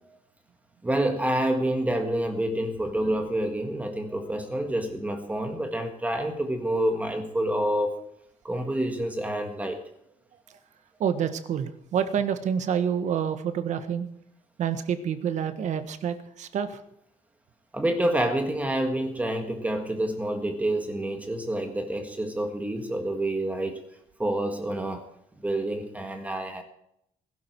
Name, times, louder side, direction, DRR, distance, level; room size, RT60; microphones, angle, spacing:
voice 1, 0.8-8.0 8.4-9.8 17.7-23.8 24.2-25.1 25.4-26.6, right 1 dB, 10° right, 5 dB, 1.7 m, -28 dB
voice 2, 11.0-14.1 14.6-16.8, right 8 dB, 60° right, 10 dB, 1.5 m, -28 dB
20.5 x 12.0 x 4.8 m, 0.75 s
cardioid pair, 155°, 14 cm